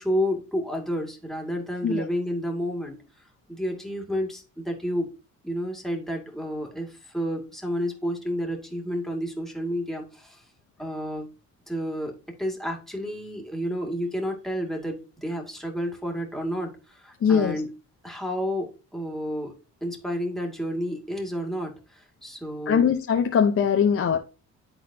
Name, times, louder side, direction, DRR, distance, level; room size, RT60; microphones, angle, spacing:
voice 1, 0.0-5.1 5.4-10.4 10.8-11.3 11.7-17.7 18.0-19.5 19.8-22.9, equal, ahead, 2.2 m, -30 dB
voice 2, 17.2-17.6 22.7-24.2, left 7 dB, 50° left, 0.8 m, -21 dB
11.0 x 4.0 x 2.8 m
cardioid pair, 90°, 30 cm